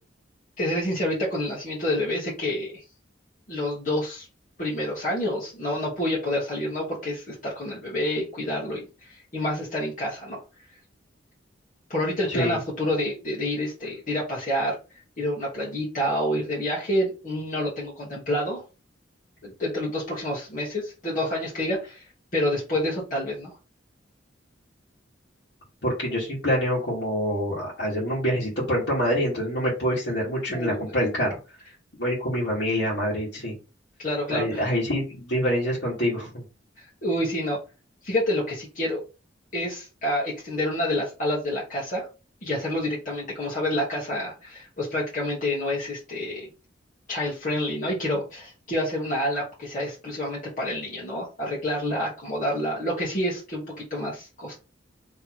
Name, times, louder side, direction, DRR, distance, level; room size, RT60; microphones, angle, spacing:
voice 1, 0.6-2.8 3.5-4.3 4.6-10.4 11.9-14.8 15.2-18.6 19.4-22.0 22.3-23.5 30.5-30.9 34.0-34.6 36.8-37.6 38.0-39.0 39.5-42.1 42.4-46.5 47.1-54.6, left 1 dB, 45° left, -6 dB, 1.4 m, -28 dB
voice 2, 25.8-31.4 32.0-33.5 34.3-36.3, equal, 70° left, -7 dB, 1.7 m, -26 dB
4.2 x 3.2 x 3.0 m, 0.31 s
head